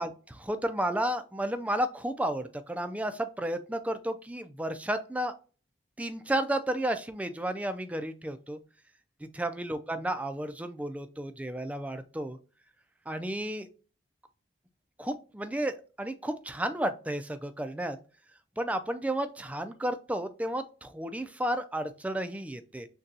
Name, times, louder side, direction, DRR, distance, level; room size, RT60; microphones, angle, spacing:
voice 1, 0.0-5.3 6.0-8.6 9.3-12.4 13.1-13.7 15.0-18.0 18.6-22.9, right 1 dB, 10° right, 9 dB, 0.4 m, -32 dB
6.4 x 2.3 x 2.7 m, 0.36 s
head